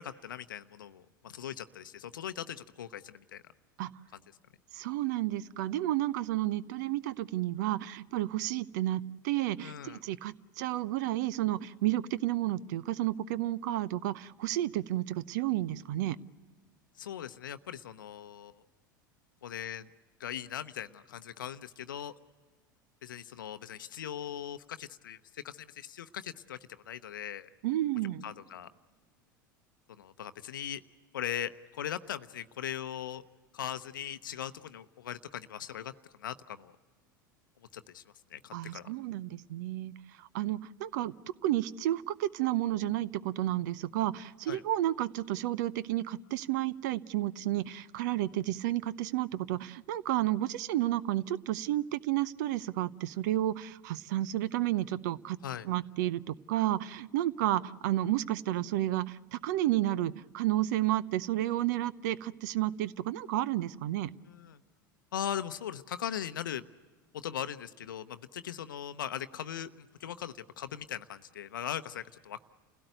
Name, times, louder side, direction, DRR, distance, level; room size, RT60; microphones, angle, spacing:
voice 1, 0.0-3.4 4.1-4.2 9.6-10.0 17.0-18.6 19.4-19.9 20.2-22.1 23.0-27.5 28.0-28.7 30.0-30.8 31.1-33.2 33.5-35.9 36.2-36.7 37.7-38.0 38.3-38.9 44.5-44.6 55.4-55.7 64.2-64.6 65.1-66.6 67.1-72.4, left 10 dB, 75° left, 12 dB, 0.7 m, -40 dB
voice 2, 4.7-16.2 27.6-28.2 38.5-39.9 40.3-41.1 41.4-55.4 55.6-64.1, right 14 dB, 60° right, 19 dB, 0.7 m, -31 dB
29.0 x 17.0 x 8.0 m, 1.4 s
figure-of-eight pair, 80°, 11 cm